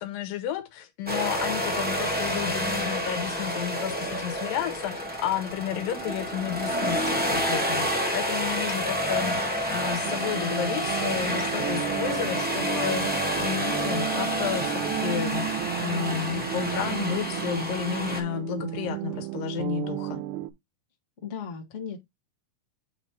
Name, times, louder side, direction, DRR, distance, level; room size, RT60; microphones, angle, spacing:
voice 1, 0.0-20.2, left 10 dB, 85° left, 2.6 m, -32 dB
sound 1, 1.1-18.2, equal, 10° right, 0.5 m, -29 dB
sound 2, 10.0-20.5, right 15 dB, 75° right, 1.9 m, -33 dB
voice 2, 21.2-22.0, left 7 dB, 35° left, 1.2 m, -36 dB
8.9 x 3.1 x 4.4 m
omnidirectional pair, 3.9 m